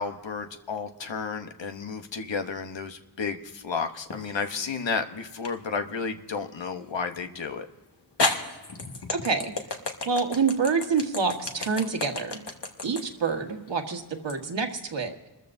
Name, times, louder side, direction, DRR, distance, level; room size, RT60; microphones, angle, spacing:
voice 1, 0.0-7.7, left 5 dB, 85° left, 7 dB, 1.0 m, -32 dB
sound 1, 4.1-4.7 5.4-5.6 7.4-7.5 8.2-14.4, left 2 dB, 70° left, 1.6 m, -31 dB
voice 2, 9.1-9.5 10.0-12.4 12.8-15.3, right 5 dB, 75° right, 4 dB, 1.6 m, -27 dB
28.0 x 14.0 x 2.6 m, 1.2 s
wide cardioid pair, 80°, 43 cm